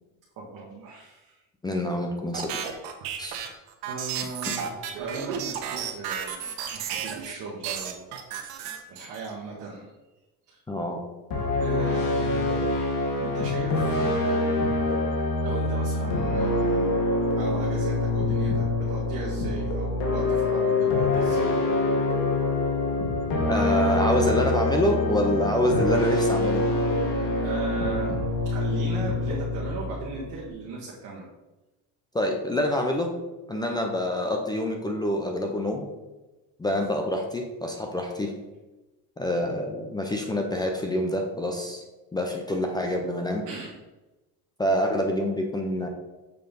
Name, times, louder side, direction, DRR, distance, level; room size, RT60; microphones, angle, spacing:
voice 1, 0.4-1.4 3.8-8.0 8.3-8.4 8.9-9.9 10.5-10.6 11.6-14.6 15.4-17.0 17.4-21.5 27.4-31.2 43.4-43.7, right 3 dB, 55° right, -3 dB, 1.5 m, -37 dB
voice 2, 1.6-2.8 3.2-3.4 10.7-11.0 23.5-26.6 32.1-33.1 33.5-35.8 36.6-38.3 39.2-41.8 42.1-43.4 44.6-45.9, left 1 dB, 10° left, 2 dB, 0.6 m, -26 dB
sound 1, 2.3-7.3 7.6-9.3, right 8 dB, 75° right, 1.1 m, -33 dB
sound 2, 11.3-30.5, left 2 dB, 65° left, 1.7 m, -25 dB
6.8 x 3.8 x 5.3 m, 1.1 s
cardioid pair, 145°, 37 cm